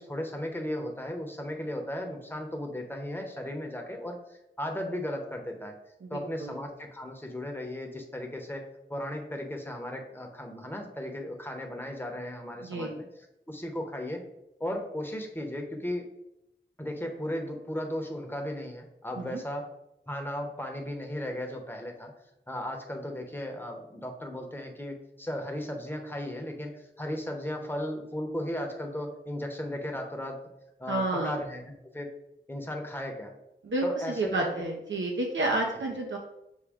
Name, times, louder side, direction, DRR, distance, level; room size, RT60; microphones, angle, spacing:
voice 1, 0.0-5.7 6.1-8.6 8.9-13.0 13.5-14.2 14.6-16.1 16.8-19.7 20.1-22.1 22.5-30.4 30.8-32.1 32.5-33.3 33.8-34.6, left 1 dB, 10° left, 2 dB, 0.8 m, -36 dB
voice 2, 6.0-6.5 12.6-12.9 19.2-19.4 30.9-31.4 33.6-36.2, right 2 dB, 75° right, 0 dB, 0.6 m, -30 dB
6.2 x 2.2 x 3.5 m, 0.86 s
wide cardioid pair, 45°, 20 cm